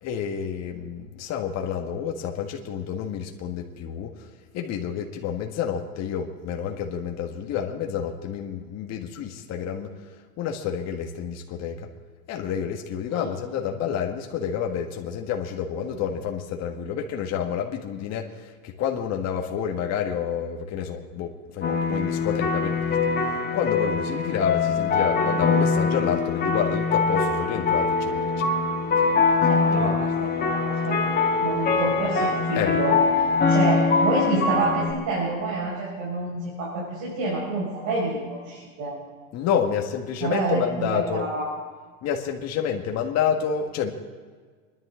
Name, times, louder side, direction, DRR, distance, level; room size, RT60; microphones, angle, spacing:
voice 1, 0.0-4.1 4.5-9.9 10.4-11.9 12.3-22.9 23.5-28.5 29.0-29.1 29.7-29.9 32.5-32.7 39.3-41.3 42.0-43.9, left 8 dB, 40° left, 2 dB, 1.7 m, -29 dB
sound 1, 21.6-34.9, left 4 dB, 25° left, 2.0 m, -23 dB
Organ, 27.6-34.2, right 1 dB, 10° right, 2.4 m, -45 dB
voice 2, 29.5-33.0 33.4-39.0 40.2-41.5, right 2 dB, 45° right, -4 dB, 5.6 m, -28 dB
27.5 x 11.0 x 3.8 m, 1.6 s
supercardioid pair, 120°, 41 cm